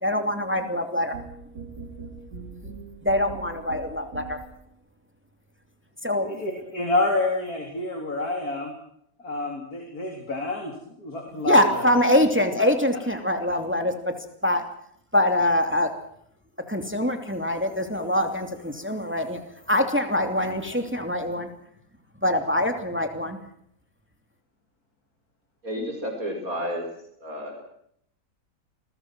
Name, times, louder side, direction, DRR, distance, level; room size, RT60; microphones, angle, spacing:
voice 1, 0.0-1.1 3.0-4.4 6.0-6.3 11.5-13.9 14.4-14.6 15.1-15.9 16.7-19.4 19.7-21.5 22.2-23.4, left 1 dB, 5° right, 5 dB, 2.7 m, -23 dB
sound 1, 1.1-4.7, right 4 dB, 80° right, 5.2 m, -41 dB
voice 2, 6.2-8.7 9.2-10.7 11.0-11.9 12.6-12.7, left 2 dB, 60° left, 2 dB, 4.3 m, -28 dB
voice 3, 25.6-26.9 27.2-27.6, equal, 55° right, 3 dB, 5.5 m, -31 dB
28.0 x 22.0 x 6.2 m, 0.70 s
omnidirectional pair, 1.8 m